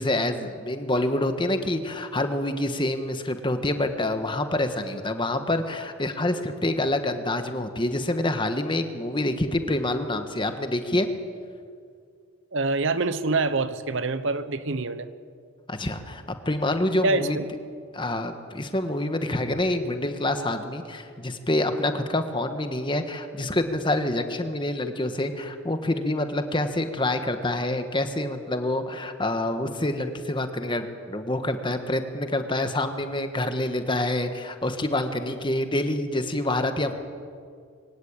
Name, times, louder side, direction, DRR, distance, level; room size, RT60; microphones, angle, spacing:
voice 1, 0.0-11.1 15.7-17.4 17.9-36.9, left 1 dB, 25° left, 7 dB, 1.4 m, -27 dB
voice 2, 12.5-15.1 17.0-17.4, right 3 dB, 60° right, 12 dB, 1.0 m, -25 dB
23.5 x 17.0 x 8.9 m, 2.2 s
head